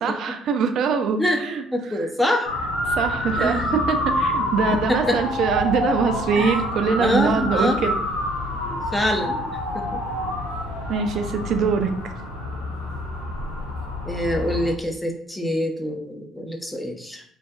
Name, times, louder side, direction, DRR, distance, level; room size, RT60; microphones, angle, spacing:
voice 1, 0.0-1.6 1.9-2.1 2.9-7.9 10.9-11.9, right 6 dB, 60° right, 6 dB, 0.3 m, -23 dB
voice 2, 1.7-2.5 3.4-3.8 4.7-5.2 6.4-6.5 7.0-7.8 8.6-9.5 9.7-10.0 14.0-17.2, left 1 dB, 10° left, 2 dB, 0.6 m, -25 dB
Motor vehicle (road) / Siren, 2.4-14.7, left 1 dB, 80° left, 0.5 m, -27 dB
2.6 x 2.4 x 2.2 m, 0.62 s
hypercardioid pair, 50°, 0 cm